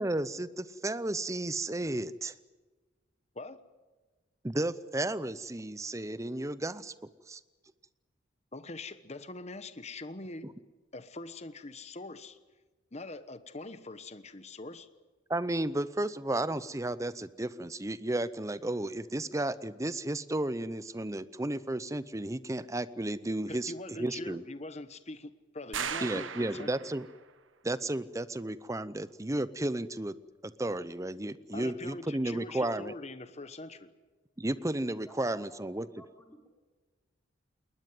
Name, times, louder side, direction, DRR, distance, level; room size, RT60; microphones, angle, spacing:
voice 1, 0.0-2.3 4.4-6.9 7.3-7.4 10.4-10.5 15.3-24.4 26.0-27.1 27.6-30.1 30.4-32.9 34.4-35.9, right 1 dB, 15° right, 16 dB, 0.7 m, -33 dB
voice 2, 8.5-10.5 10.9-12.4 12.9-14.9 23.5-26.7 31.5-33.9, left 2 dB, 35° left, 12 dB, 1.1 m, -43 dB
sound 1, 25.7-27.2, right 7 dB, 75° right, 1.3 m, -37 dB
voice 3, 35.0-36.5, equal, 10° left, 2 dB, 3.2 m, -55 dB
20.5 x 20.0 x 9.3 m, 1.3 s
head